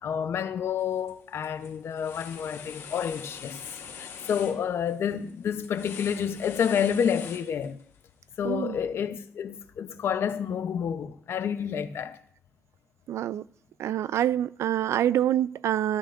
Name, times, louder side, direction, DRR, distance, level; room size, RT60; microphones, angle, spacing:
voice 1, 0.0-3.7 3.9-7.8 8.4-12.2, left 8 dB, 60° left, 0.7 m, -29 dB
sound 1, 0.8-1.1 1.4-8.0, left 7 dB, 90° left, 1.9 m, -44 dB
voice 2, 8.4-8.8 13.1-13.4 13.8-16.0, right 11 dB, 80° right, 0.3 m, -26 dB
15.0 x 12.5 x 2.5 m
wide cardioid pair, 160°, 5 cm